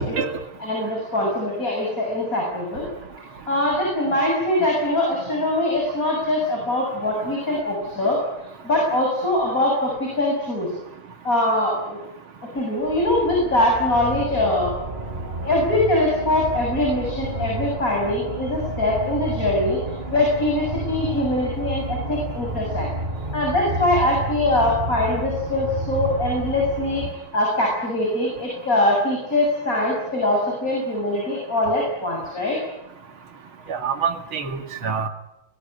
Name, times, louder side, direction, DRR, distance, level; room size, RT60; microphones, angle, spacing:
voice 1, 0.6-2.9 3.5-8.2 8.6-10.7 11.2-12.0 12.5-14.7 15.4-19.8 20.1-22.9 23.3-27.0 27.3-32.6, left 1 dB, 40° left, -1 dB, 7.5 m, -22 dB
sound 1, 12.8-27.1, right 2 dB, 25° right, 3.8 m, -31 dB
voice 2, 33.7-35.1, right 6 dB, 80° right, 7 dB, 3.0 m, -26 dB
28.0 x 20.5 x 9.9 m, 0.89 s
omnidirectional pair, 2.2 m